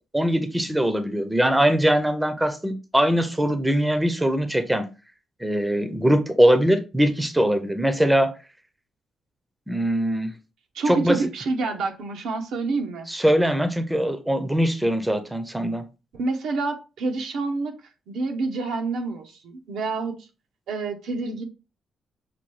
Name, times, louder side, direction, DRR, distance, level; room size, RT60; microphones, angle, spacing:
voice 1, 0.1-4.9 5.4-8.3 9.7-10.3 10.9-11.2 13.1-15.8, equal, 5° right, 0.5 m, -21 dB
voice 2, 10.7-13.1 16.1-17.8 18.1-20.3 20.7-21.4, right 3 dB, 85° right, 0.7 m, -28 dB
5.8 x 2.2 x 3.1 m
cardioid pair, 130°, 0 cm